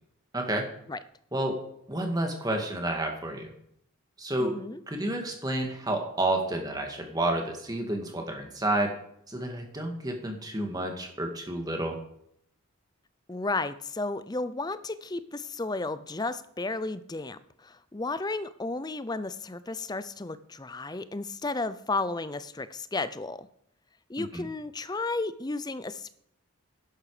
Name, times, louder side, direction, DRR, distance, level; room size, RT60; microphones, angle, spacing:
voice 1, 0.3-0.7 1.3-1.6 1.9-3.5 4.2-4.5 4.9-8.9 9.3-12.0 24.2-24.4, right 1 dB, 15° right, 3 dB, 2.1 m, -30 dB
voice 2, 4.4-4.8 13.3-23.5 24.1-26.1, left 3 dB, 20° left, 14 dB, 0.5 m, -33 dB
11.0 x 11.0 x 5.0 m, 0.71 s
head